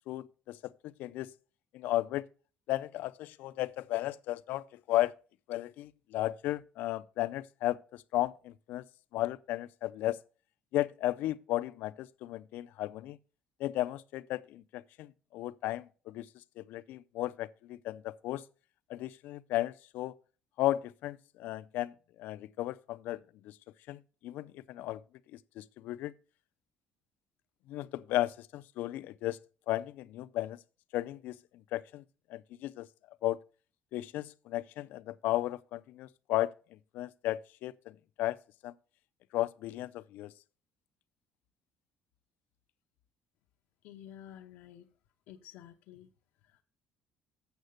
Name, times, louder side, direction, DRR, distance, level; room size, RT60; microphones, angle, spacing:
voice 1, 0.1-1.3 1.7-2.2 2.7-5.1 5.5-8.8 9.1-10.2 10.7-13.2 13.6-16.3 16.6-18.4 18.9-20.1 20.6-21.9 22.2-23.2 23.4-23.5 23.9-25.0 25.6-26.1 27.7-29.4 29.7-30.6 30.9-31.4 31.7-32.0 32.3-32.9 33.2-33.4 33.9-36.5 36.9-38.4 38.6-38.7 39.3-40.3, left 15 dB, 65° left, 0.5 m, -34 dB
voice 2, 43.8-44.9 45.3-46.1 46.4-46.6, left 11 dB, 85° left, 0.8 m, -51 dB
8.1 x 6.5 x 6.4 m
cardioid pair, 175°, 3 cm